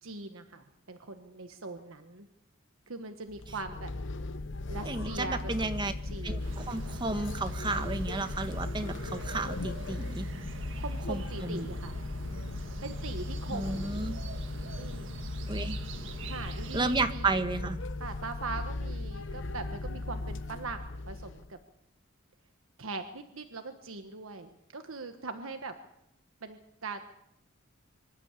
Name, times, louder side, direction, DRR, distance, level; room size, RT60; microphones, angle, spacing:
voice 1, 0.0-2.3 2.9-3.9 4.7-5.5 5.8-6.6 10.8-12.0 12.8-13.9 14.7-15.2 16.3-17.4 18.0-21.6 22.8-25.7 26.4-27.0, right 3 dB, 90° right, 7 dB, 1.3 m, -41 dB
sound 1, 3.3-21.5, left 2 dB, 60° left, 0.8 m, -37 dB
voice 2, 4.8-5.9 6.2-10.3 11.1-11.7 13.5-14.2 15.5-15.8 16.7-17.8, right 3 dB, 20° right, 9 dB, 1.3 m, -32 dB
sound 2, 6.4-17.1, right 3 dB, 65° right, 1.8 m, -44 dB
25.0 x 12.5 x 8.3 m, 0.82 s
head